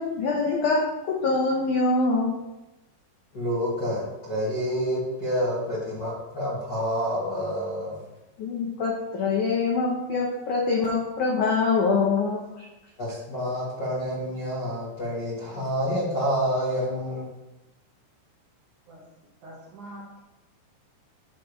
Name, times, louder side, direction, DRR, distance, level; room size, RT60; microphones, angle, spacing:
voice 1, 0.0-2.3 8.4-12.7, left 3 dB, 85° left, -1 dB, 1.7 m, -24 dB
voice 2, 3.3-8.0 13.0-17.3, equal, 45° left, -9 dB, 1.3 m, -28 dB
voice 3, 19.4-20.2, right 1 dB, 65° right, -5 dB, 2.1 m, -44 dB
10.0 x 6.8 x 3.2 m, 1.0 s
omnidirectional pair, 5.0 m